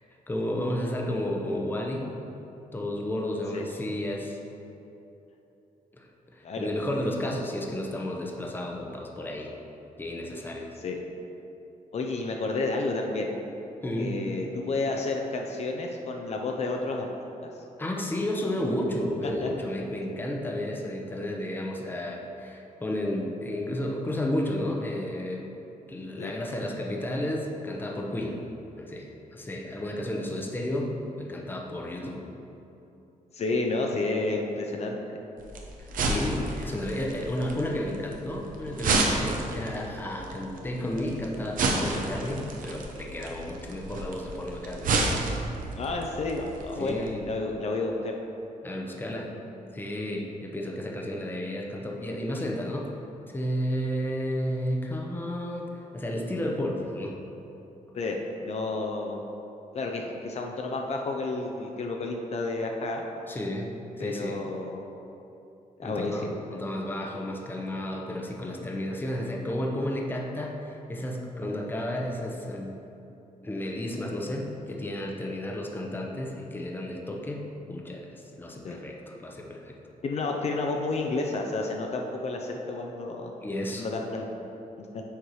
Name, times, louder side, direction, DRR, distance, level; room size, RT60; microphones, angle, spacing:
voice 1, 0.3-2.1 2.7-4.4 6.0-9.5 10.0-10.7 13.8-14.2 17.8-25.5 25.9-28.4 28.8-32.2 35.8-44.9 46.8-47.3 48.6-49.3 49.7-52.9 53.3-57.2 63.3-63.7 64.0-64.4 65.8-72.8 73.4-79.8 83.4-83.9, left 1 dB, 15° left, 0 dB, 0.7 m, -32 dB
voice 2, 11.9-13.3 14.0-17.1 17.4-17.5 19.4-19.5 26.2-26.3 33.3-35.2 45.8-48.1 57.9-59.2 59.7-63.0 64.0-64.8 65.8-66.4 78.6-78.8 80.0-83.3 83.8-84.2 84.8-85.0, left 3 dB, 50° left, 1 dB, 0.6 m, -31 dB
sound 1, 35.4-47.1, right 3 dB, 75° right, 0.8 m, -31 dB
6.6 x 4.7 x 4.8 m, 2.9 s
cardioid pair, 120°, 14 cm